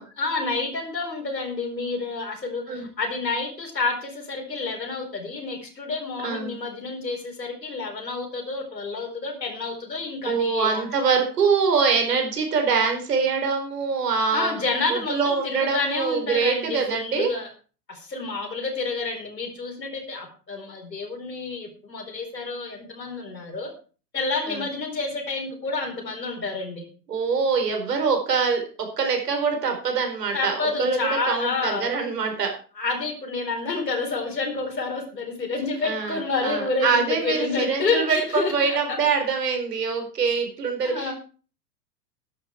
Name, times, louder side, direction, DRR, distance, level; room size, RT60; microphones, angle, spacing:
voice 1, 0.2-10.9 14.3-17.5 17.9-23.7 24.1-26.9 30.3-32.0 32.8-39.0 40.2-40.4 40.8-41.1, left 3 dB, 80° left, 5 dB, 4.6 m, -29 dB
voice 2, 10.2-14.5 14.9-17.3 24.5-24.6 27.1-28.6 29.0-31.0 31.3-32.5 35.8-36.2 36.4-41.1, right 5 dB, 70° right, 4 dB, 4.6 m, -24 dB
14.0 x 10.5 x 4.6 m, 0.38 s
figure-of-eight pair, 100°, 50 cm